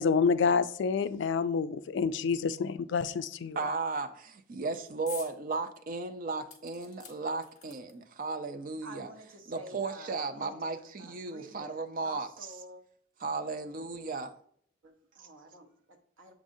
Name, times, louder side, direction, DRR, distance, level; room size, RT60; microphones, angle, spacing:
voice 1, 0.0-3.6, left 5 dB, 60° left, 0.3 m, -28 dB
voice 2, 3.6-9.1 9.5-12.3 13.2-14.3, right 3 dB, 40° right, 0.4 m, -35 dB
sound 1, 5.1-5.4 5.8-5.9 6.5-8.1 9.0-9.1 9.4-9.5, left 6 dB, 35° left, 1.3 m, -48 dB
voice 3, 8.8-10.5 11.0-11.7 12.0-12.8 13.4-13.5 13.8-14.1 14.8-16.3, right 1 dB, 75° right, 0.9 m, -50 dB
7.2 x 5.0 x 2.6 m
head